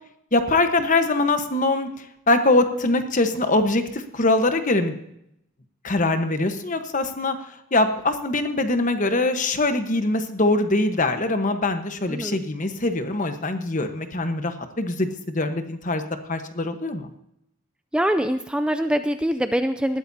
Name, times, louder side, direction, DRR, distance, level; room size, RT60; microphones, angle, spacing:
voice 1, 0.3-1.9 2.3-5.0 5.8-7.4 7.7-16.0 16.3-17.1, left 2 dB, 40° left, 8 dB, 1.2 m, -23 dB
voice 2, 12.1-12.4 17.9-20.0, equal, 5° right, 8 dB, 0.4 m, -24 dB
19.5 x 13.0 x 2.8 m, 0.78 s
head